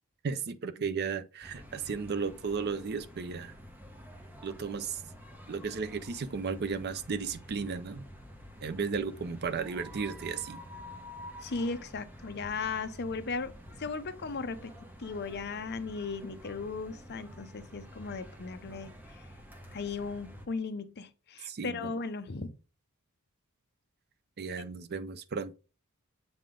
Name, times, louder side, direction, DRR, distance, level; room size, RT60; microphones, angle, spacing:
voice 1, 0.2-3.5 4.4-5.0 5.5-8.0 8.6-10.6 21.5-21.9 24.4-25.5, right 5 dB, 45° right, 0.5 m, -34 dB
sound 1, 1.4-20.5, equal, 10° right, 0.9 m, -49 dB
voice 2, 11.4-13.5 13.8-14.7 15.0-18.9 19.7-22.5, left 4 dB, 45° left, 0.6 m, -36 dB
7.6 x 3.4 x 3.7 m
head